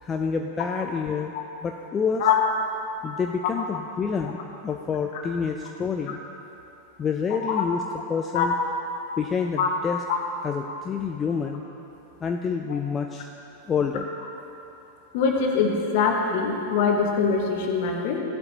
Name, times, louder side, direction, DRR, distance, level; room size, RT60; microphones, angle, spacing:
voice 1, 0.0-1.3 1.6-2.3 3.0-4.4 4.6-6.2 7.0-7.8 8.1-8.5 9.2-10.0 10.4-11.6 12.2-13.3 13.7-14.1, left 6 dB, 20° left, 4 dB, 0.5 m, -28 dB
voice 2, 15.1-18.2, left 6 dB, 50° left, 1 dB, 1.6 m, -23 dB
16.5 x 11.5 x 2.9 m, 2.9 s
figure-of-eight pair, 90°, 0 cm